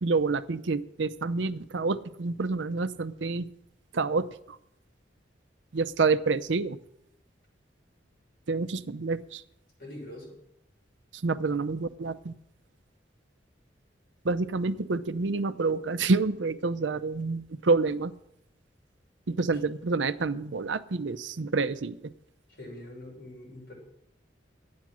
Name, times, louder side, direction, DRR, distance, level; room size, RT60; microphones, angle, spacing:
voice 1, 0.0-3.5 3.9-4.6 5.7-6.8 8.5-9.4 11.2-12.4 14.2-18.1 19.3-22.1, right 3 dB, 80° right, 12 dB, 0.6 m, -28 dB
voice 2, 9.8-10.4 22.5-23.7, left 1 dB, 65° left, -2 dB, 5.8 m, -43 dB
12.0 x 9.5 x 6.2 m, 0.77 s
head